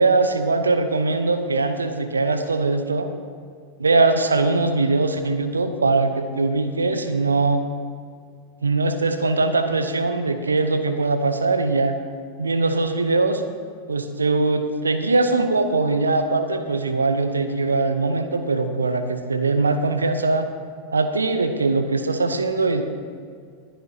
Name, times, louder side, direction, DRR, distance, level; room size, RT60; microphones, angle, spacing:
voice 1, 0.0-3.1 3.8-7.6 8.6-12.0 12.4-13.4 13.9-20.5 20.9-22.8, right 3 dB, 75° right, 9 dB, 0.9 m, -21 dB
20.5 x 10.0 x 2.9 m, 2.2 s
figure-of-eight pair, 90°, 0 cm